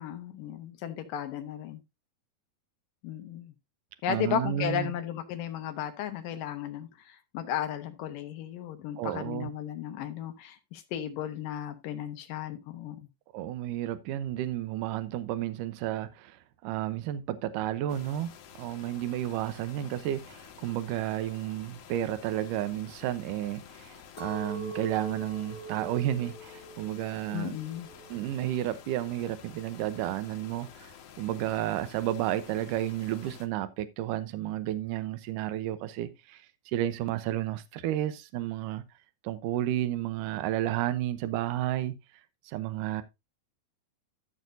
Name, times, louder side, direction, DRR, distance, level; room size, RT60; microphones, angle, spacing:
voice 1, 0.0-1.8 3.0-3.5 4.0-13.1 27.3-27.9, left 10 dB, 75° left, 2.6 m, -35 dB
voice 2, 4.1-4.9 9.0-9.5 13.3-18.3 18.6-27.6 28.1-38.8 39.2-42.0 42.5-43.0, right 12 dB, 75° right, 2.3 m, -32 dB
sound 1, 17.9-33.5, left 8 dB, 90° left, 3.1 m, -51 dB
Chink clink, 24.2-28.5 28.9-29.5, right 2 dB, 20° left, 2.7 m, -43 dB
14.0 x 6.4 x 2.6 m
omnidirectional pair, 4.1 m